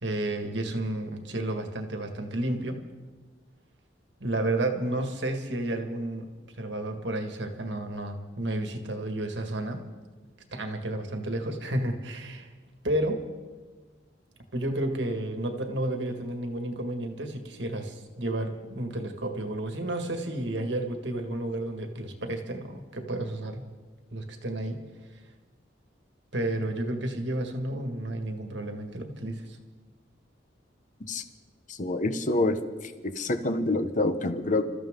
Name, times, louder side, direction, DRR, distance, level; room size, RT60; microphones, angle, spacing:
voice 1, 0.0-2.8 4.2-6.3 6.6-9.8 10.5-12.5 12.8-13.3 14.5-23.7 24.1-24.8 26.3-29.6, right 1 dB, 65° right, 5 dB, 1.9 m, -31 dB
voice 2, 31.7-32.6 32.8-34.6, left 2 dB, 40° left, 9 dB, 1.0 m, -27 dB
27.0 x 14.0 x 3.8 m, 1.3 s
head